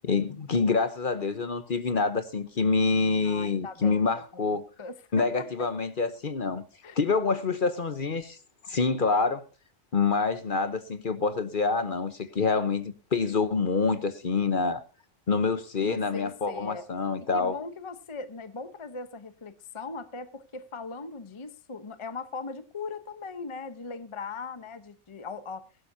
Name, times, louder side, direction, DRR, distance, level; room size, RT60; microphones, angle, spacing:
voice 1, 0.0-4.6 5.1-6.6 7.0-8.4 8.6-9.4 9.9-14.8 15.3-17.6, left 4 dB, 45° left, 1.1 m, -26 dB
voice 2, 3.2-5.7 6.8-7.0 15.8-16.9 17.2-25.7, left 4 dB, 30° left, 0.9 m, -39 dB
20.5 x 11.5 x 2.7 m
omnidirectional pair, 1.2 m